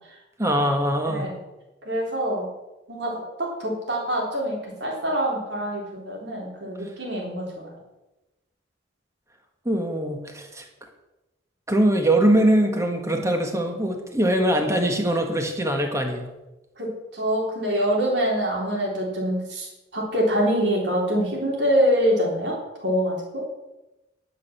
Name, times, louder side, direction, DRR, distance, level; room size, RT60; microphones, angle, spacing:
voice 1, 0.4-1.3 9.6-10.7 11.7-16.3, right 1 dB, 15° right, 4 dB, 1.6 m, -22 dB
voice 2, 1.0-1.4 1.8-2.5 2.9-7.7 13.1-13.2 16.8-22.6 22.8-23.4, equal, 60° right, -2 dB, 3.7 m, -25 dB
11.0 x 6.6 x 7.3 m, 1.0 s
head